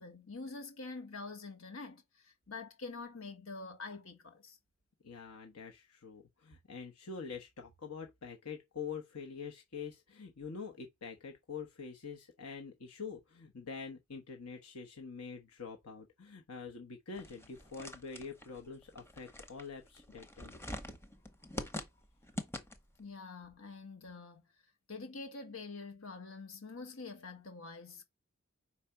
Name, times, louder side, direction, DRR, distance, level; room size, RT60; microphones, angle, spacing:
voice 1, 0.0-4.6 23.0-24.4 24.9-28.0, left 3 dB, 65° left, 1.5 m, -46 dB
voice 2, 5.0-20.5, left 5 dB, 90° left, 1.1 m, -45 dB
sound 1, 17.2-23.0, left 1 dB, 10° left, 0.7 m, -45 dB
4.9 x 4.2 x 5.7 m
head